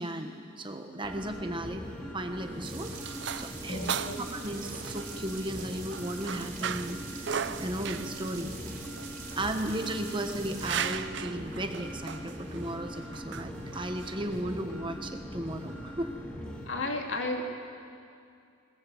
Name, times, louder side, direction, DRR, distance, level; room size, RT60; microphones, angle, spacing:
voice 1, 0.0-1.8 2.1-8.5 9.4-16.1, right 1 dB, 25° right, 6 dB, 1.2 m, -35 dB
sound 1, 1.0-16.6, equal, 5° left, 2.4 m, -41 dB
sound 2, 2.3-14.6, right 7 dB, 55° right, 0.6 m, -38 dB
sound 3, 2.6-10.9, right 6 dB, 40° right, 3.7 m, -45 dB
voice 2, 3.7-4.1 16.6-17.4, left 2 dB, 65° left, 1 dB, 2.8 m, -33 dB
21.5 x 19.5 x 7.8 m, 2.4 s
head